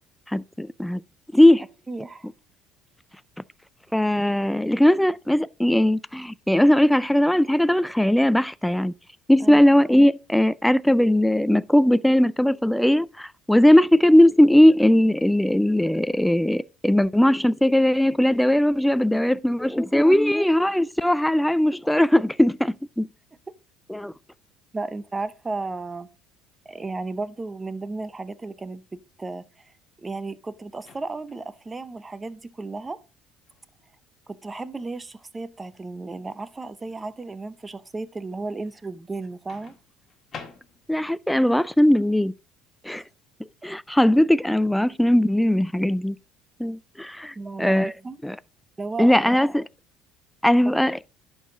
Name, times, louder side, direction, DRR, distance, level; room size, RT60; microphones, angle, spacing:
voice 1, 0.3-1.0 1.3-1.6 3.9-8.9 9.3-23.1 23.9-24.1 40.9-42.3 42.8-43.0 43.6-46.2 46.6-47.9 48.2-48.4 49.0-49.6 50.4-51.0, left 1 dB, 5° left, 0.3 m, -19 dB
voice 2, 1.9-2.3 9.4-9.6 24.7-26.1 26.6-29.7 30.0-33.0 34.3-39.7 42.9-43.1 47.4-48.2 48.8-49.4, right 3 dB, 20° right, 0.7 m, -34 dB
Microwave oven, 30.8-31.5 33.5-33.7 39.5-41.1, left 6 dB, 40° left, 1.6 m, -45 dB
11.0 x 4.7 x 3.8 m
supercardioid pair, 95°, 0 cm